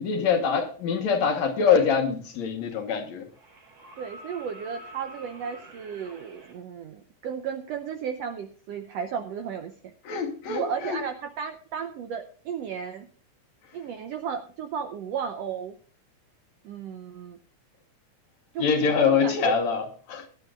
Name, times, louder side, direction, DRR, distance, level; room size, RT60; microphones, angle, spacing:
voice 1, 0.0-3.3 10.1-11.0 18.6-20.3, left 6 dB, 65° left, 2.4 m, -24 dB
sound 1, 2.2-2.3 3.3-6.5 8.3-8.4, right 2 dB, 55° right, 5.2 m, -47 dB
voice 2, 4.0-9.7 10.5-13.1 13.7-15.7 16.6-17.4 18.5-19.6, right 7 dB, 80° right, 1.5 m, -34 dB
20.5 x 10.5 x 2.4 m
omnidirectional pair, 3.7 m